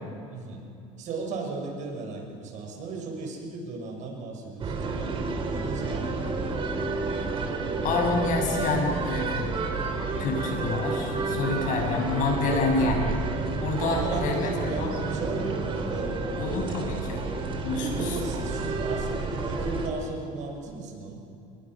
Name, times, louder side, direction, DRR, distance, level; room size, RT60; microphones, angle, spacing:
voice 1, 0.3-0.6 1.0-6.3 9.7-10.0 13.7-16.3 17.7-21.2, right 3 dB, 55° right, 1 dB, 6.4 m, -36 dB
sound 1, 4.6-19.9, right 3 dB, 35° right, 3.5 m, -30 dB
voice 2, 7.8-9.5 10.2-13.1 13.6-14.9 16.4-17.2 17.6-18.2, left 3 dB, 60° left, 1 dB, 6.8 m, -28 dB
29.0 x 21.5 x 6.1 m, 2.6 s
cardioid pair, 120°, 15 cm